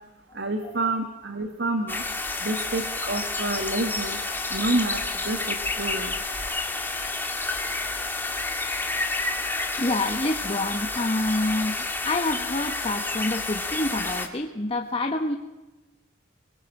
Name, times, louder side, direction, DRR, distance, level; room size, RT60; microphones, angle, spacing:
voice 1, 0.3-2.0 2.4-4.2 4.5-6.1, right 2 dB, 60° right, 6 dB, 1.9 m, -28 dB
sound 1, 1.9-14.3, left 3 dB, 10° left, 2.1 m, -30 dB
voice 2, 9.8-15.4, left 2 dB, 30° left, 4 dB, 1.3 m, -27 dB
23.5 x 22.0 x 6.7 m, 1.1 s
head